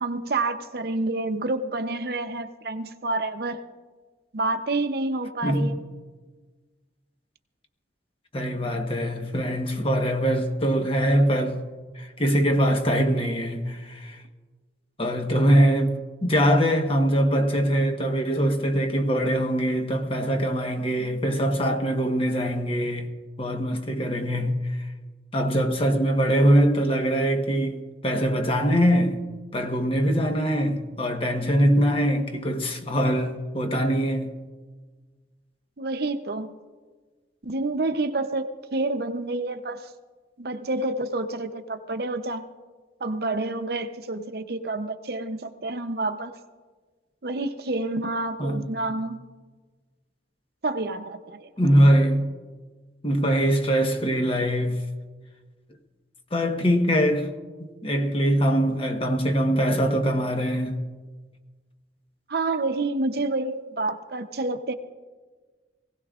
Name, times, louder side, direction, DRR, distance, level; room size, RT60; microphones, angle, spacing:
voice 1, 0.0-3.6 4.3-5.8 35.8-36.5 37.4-39.9 40.4-42.4 43.0-46.4 47.2-49.2 50.6-51.5 62.3-64.7, right 2 dB, 60° right, 0.7 m, -28 dB
voice 2, 5.4-5.8 8.3-11.6 11.9-14.2 15.0-23.1 23.4-24.9 25.3-29.2 29.5-34.3 48.4-48.7 51.6-52.3 53.0-54.9 56.3-57.3 57.8-60.8, equal, 30° left, 1.1 m, -23 dB
23.5 x 17.0 x 2.5 m
head